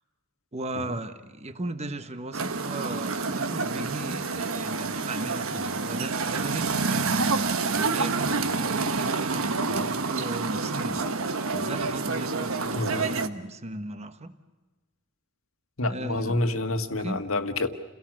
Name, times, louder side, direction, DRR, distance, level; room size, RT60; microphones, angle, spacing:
voice 1, 0.5-11.0 11.5-14.3 15.8-16.4 17.0-17.2, right 1 dB, 30° right, 9 dB, 1.2 m, -36 dB
sound 1, 2.3-13.3, right 4 dB, 75° right, 1.2 m, -28 dB
voice 2, 15.8-17.7, left 2 dB, 75° left, 7 dB, 1.7 m, -27 dB
29.5 x 17.5 x 7.6 m, 1.3 s
head